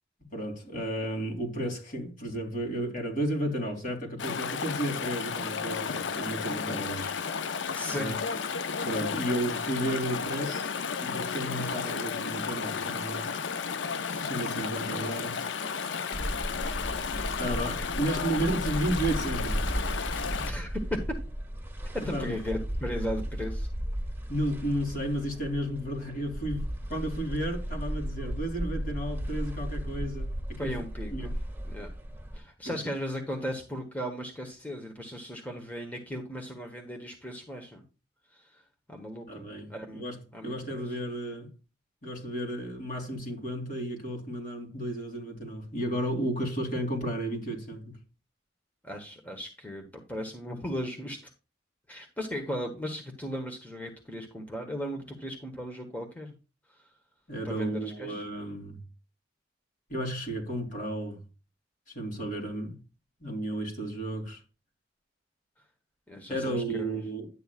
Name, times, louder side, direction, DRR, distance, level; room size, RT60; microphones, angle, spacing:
voice 1, 0.3-7.2 7.9-8.2 8.8-10.7 11.0-13.3 14.2-15.4 17.4-19.7 22.1-22.3 24.3-30.8 31.1-31.3 32.6-32.8 39.3-40.2 40.4-41.5 42.0-48.0 57.3-58.8 59.9-61.2 61.9-62.8 63.2-64.4 66.3-67.3, right 1 dB, 45° left, 3.3 m, -33 dB
Chatter / Stream, 4.2-20.5, left 6 dB, 80° left, 0.6 m, -33 dB
voice 2, 7.7-8.2 20.4-20.8 21.9-23.7 30.6-31.3 31.6-31.9 32.3-37.8 38.3-38.6 38.9-40.0 40.3-40.9 48.8-51.3 51.9-56.3 56.7-56.9 57.4-58.2 66.1-67.0, equal, 10° left, 1.2 m, -37 dB
sound 1, 16.1-32.4, equal, 10° right, 1.8 m, -35 dB
11.0 x 8.9 x 2.5 m
head